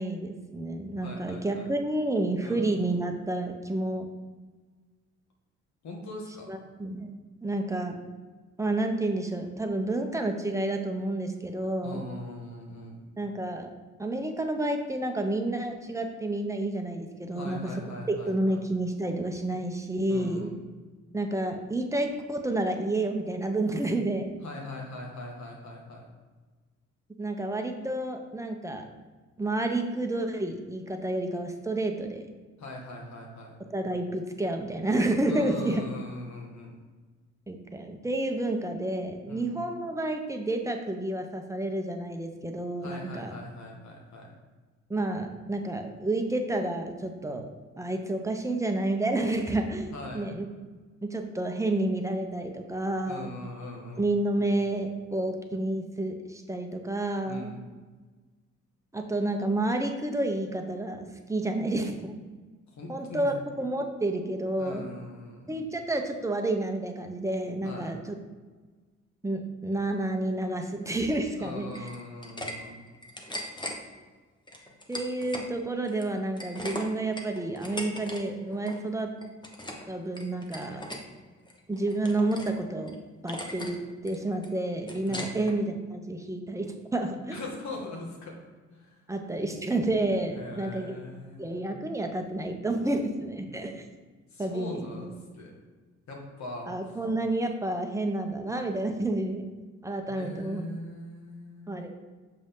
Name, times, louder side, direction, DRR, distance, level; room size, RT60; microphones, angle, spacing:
voice 1, 0.0-4.1 6.5-7.1 7.4-8.0 8.6-12.0 13.2-13.7 14.0-17.6 18.3-20.5 21.1-24.3 27.2-28.8 29.4-32.2 33.7-35.8 37.5-43.3 44.9-47.5 47.8-50.5 51.0-53.3 54.0-57.5 58.9-62.2 62.9-64.9 65.5-68.0 69.2-71.7 74.9-79.1 79.9-80.8 81.7-83.0 83.2-83.8 84.0-87.4 89.1-90.9 91.4-93.8 94.4-95.1 96.7-99.4 99.8-100.6 101.7-101.9, right 2 dB, 10° right, 4 dB, 0.9 m, -30 dB
voice 2, 1.0-1.7 2.4-2.7 5.8-6.5 11.8-13.0 17.3-18.7 20.1-20.6 24.4-26.1 32.6-33.6 35.3-36.8 39.3-39.5 42.8-44.4 49.9-50.3 53.0-54.1 57.2-57.6 62.7-63.3 64.6-65.7 67.6-67.9 71.4-72.8 85.0-85.4 87.3-88.4 88.7-89.0 90.3-91.8 93.5-93.7 94.3-95.5 96.1-97.0 100.1-101.8, left 2 dB, 65° left, 0 dB, 1.9 m, -41 dB
sound 1, 71.7-72.5 72.9-73.8 74.5-75.5 75.8-78.2 78.5-78.8 79.2-79.9 80.1-81.0 81.5-82.6 82.9-83.0 83.3-83.8 84.1-85.5, left 1 dB, 15° left, 1.1 m, -39 dB
6.7 x 5.1 x 3.8 m, 1.4 s
cardioid pair, 90°, 30 cm